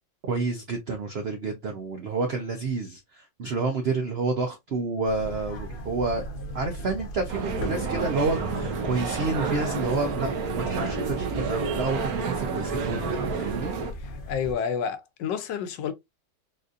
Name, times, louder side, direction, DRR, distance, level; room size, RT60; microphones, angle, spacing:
voice 1, 0.3-6.2 6.5-13.7, right 3 dB, 85° right, 0.5 m, -29 dB
sound 1, 5.0-14.5, equal, 55° left, 0.6 m, -37 dB
sound 2, 7.3-13.9, right 5 dB, 65° right, 1.1 m, -30 dB
voice 2, 14.0-15.9, left 7 dB, 90° left, 1.3 m, -30 dB
4.0 x 2.5 x 2.5 m
omnidirectional pair, 1.9 m